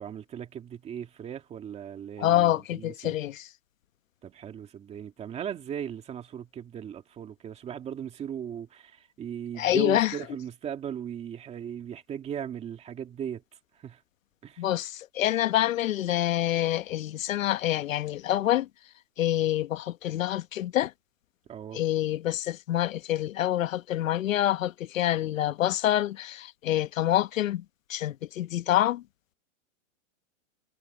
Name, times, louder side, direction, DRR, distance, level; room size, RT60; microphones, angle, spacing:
voice 1, 0.0-3.1 4.2-13.4 13.8-14.0 14.4-14.6 21.5-21.8, right 9 dB, 15° right, 2.4 m, -38 dB
voice 2, 2.2-3.5 9.6-10.1 14.6-18.7 19.2-20.9 21.7-27.6 27.9-29.0, left 13 dB, 75° left, 1.3 m, -26 dB
supercardioid pair, 165°, 40 cm